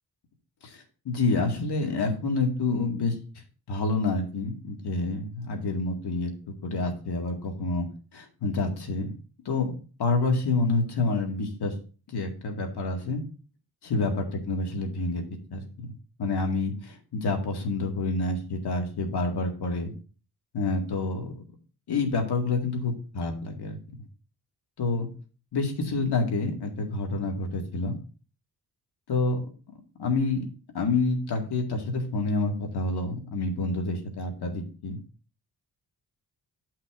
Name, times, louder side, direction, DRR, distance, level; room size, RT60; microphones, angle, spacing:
voice 1, 1.1-3.2 3.7-7.9 8.1-9.1 9.5-9.7 10.0-11.7 12.1-13.2 13.8-15.2 15.5-15.9 16.2-19.9 20.5-21.3 21.9-23.8 24.8-25.1 25.5-28.0 29.1-29.4 30.0-30.5 30.7-35.0, left 3 dB, 80° left, 2 dB, 2.2 m, -28 dB
10.0 x 5.9 x 3.8 m, 0.37 s
cardioid pair, 95°, 39 cm